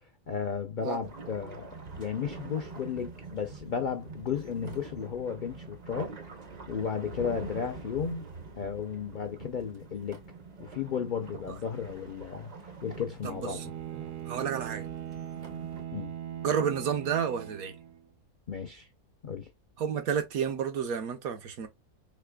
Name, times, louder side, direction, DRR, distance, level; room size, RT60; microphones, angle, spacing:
voice 1, 0.3-1.7 2.0-6.1 6.7-8.3 8.6-10.2 10.6-13.7 15.9-16.1 18.5-18.9 19.2-19.5, left 7 dB, 70° left, 0.4 m, -34 dB
sound 1, 1.0-15.8, right 4 dB, 45° right, 0.5 m, -45 dB
voice 2, 13.2-13.7 14.3-14.9 16.4-17.8 19.8-21.7, right 7 dB, 75° right, 1.3 m, -30 dB
Bowed string instrument, 13.2-18.1, right 10 dB, 90° right, 1.3 m, -40 dB
4.2 x 3.2 x 2.2 m
omnidirectional pair, 1.6 m